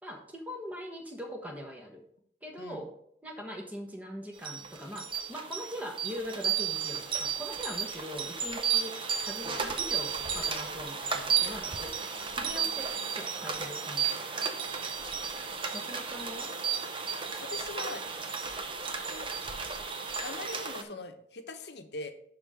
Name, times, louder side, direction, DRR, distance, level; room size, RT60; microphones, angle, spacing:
voice 1, 0.0-2.1 2.4-2.9 3.2-12.0 12.3-14.5 15.7-16.5, equal, 10° right, 1 dB, 1.3 m, -42 dB
Rain and Windchimes, 4.4-20.8, right 7 dB, 30° right, 0.7 m, -33 dB
voice 2, 17.4-18.0 19.0-19.3 20.2-22.1, left 2 dB, 70° left, 7 dB, 0.9 m, -41 dB
11.0 x 3.8 x 5.0 m, 0.68 s
head